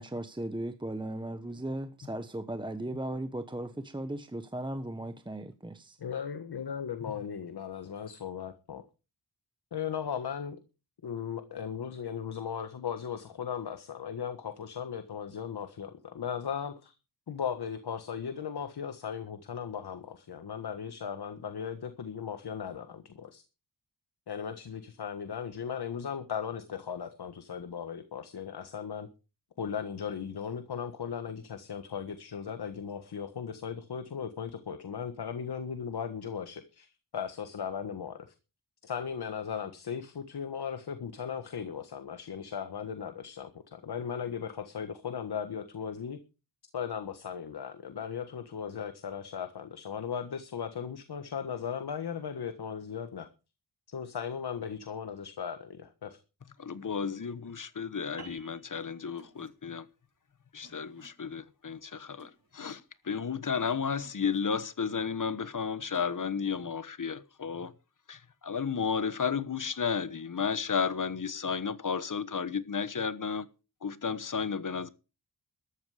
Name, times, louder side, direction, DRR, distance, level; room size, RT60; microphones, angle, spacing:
voice 1, 0.0-6.0, right 1 dB, 10° right, 1.2 m, -37 dB
voice 2, 6.0-8.8 9.7-10.6 11.0-16.9 17.3-23.4 24.3-29.1 29.6-38.3 38.8-46.2 46.7-53.3 53.9-56.2, left 7 dB, 75° left, 1.5 m, -37 dB
voice 3, 56.7-59.8 60.5-62.8 63.1-67.7 68.1-73.5 73.8-74.9, left 6 dB, 50° left, 1.2 m, -33 dB
sound 1, 58.2-62.9, right 5 dB, 85° right, 4.9 m, -55 dB
sound 2, 58.8-58.9 59.2-59.5 60.6-61.1 62.2-62.8 63.4-63.7 64.0-64.4 65.9-66.1, right 5 dB, 60° right, 7.0 m, -59 dB
13.5 x 11.5 x 5.0 m
cardioid pair, 70°, 39 cm